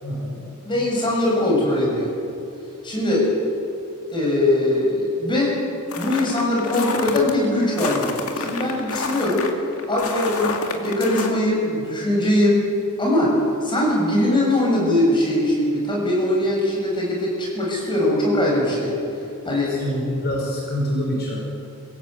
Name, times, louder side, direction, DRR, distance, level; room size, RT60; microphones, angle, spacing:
voice 1, 0.0-0.5 19.7-21.5, equal, 45° left, -3 dB, 5.2 m, -26 dB
voice 2, 0.6-2.1 2.8-3.4 4.1-5.6 6.0-9.5 9.9-12.6 13.0-13.3 13.6-18.9 19.4-19.8, left 1 dB, 20° left, -3 dB, 6.8 m, -21 dB
sound 1, 5.9-7.3 7.8-11.3, left 4 dB, 75° left, 2.2 m, -29 dB
26.0 x 17.0 x 8.2 m, 2.8 s
head